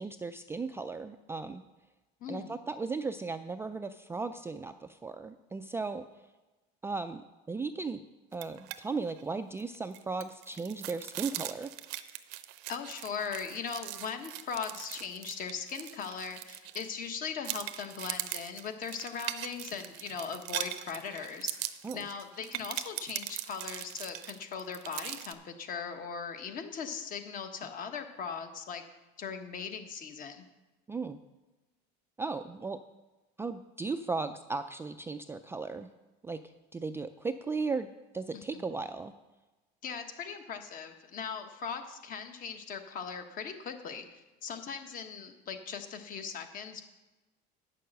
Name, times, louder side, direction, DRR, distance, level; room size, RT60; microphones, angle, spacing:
voice 1, 0.0-1.6 2.3-6.1 6.8-7.2 7.5-8.0 8.3-11.7 21.8-22.0 30.9-31.2 32.2-32.8 33.4-35.9 36.2-36.4 36.7-37.9 38.1-39.1, right 4 dB, 10° right, 8 dB, 0.3 m, -36 dB
voice 2, 2.2-2.5 12.7-21.6 21.9-28.8 29.2-30.4 38.3-38.6 39.8-44.0 44.4-46.8, left 6 dB, 45° left, 7 dB, 1.2 m, -39 dB
sound 1, 8.3-8.8 9.1-9.2 9.6-17.1 17.4-25.3, right 15 dB, 85° right, 0.7 m, -40 dB
9.0 x 6.7 x 6.5 m, 1.1 s
cardioid pair, 125°, 20 cm